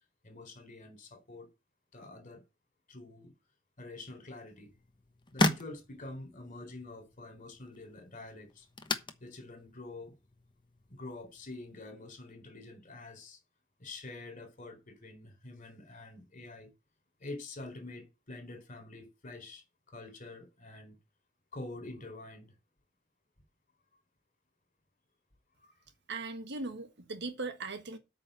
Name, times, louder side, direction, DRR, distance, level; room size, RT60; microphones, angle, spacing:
voice 1, 0.2-1.5 1.9-2.4 2.9-3.3 3.8-4.7 5.3-8.7 9.2-10.1 10.9-13.4 13.8-16.7 17.2-21.0 21.5-22.5 25.6-25.7, left 2 dB, 40° left, 3.9 m, -46 dB
sound 1, 4.5-11.8, left 2 dB, 25° left, 1.1 m, -38 dB
voice 2, 26.1-28.0, right 3 dB, 60° right, 1.5 m, -39 dB
8.8 x 5.7 x 7.6 m
head